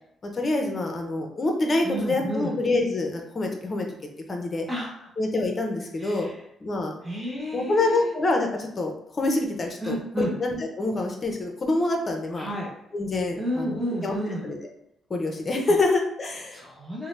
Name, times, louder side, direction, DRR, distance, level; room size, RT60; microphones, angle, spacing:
voice 1, 0.2-3.9 4.3-4.7 5.2-6.3 6.6-6.9 7.5-12.5 12.9-14.1 14.4-14.6 15.1-16.6, left 2 dB, 35° left, 3 dB, 0.6 m, -26 dB
voice 2, 1.8-2.6 4.7-5.1 6.0-6.4 7.0-8.1 9.8-10.3 12.3-12.7 13.4-14.5 15.7-15.8 16.5-17.1, equal, 5° right, -4 dB, 0.7 m, -31 dB
2.7 x 2.0 x 3.1 m, 0.79 s
cardioid pair, 90°, 0 cm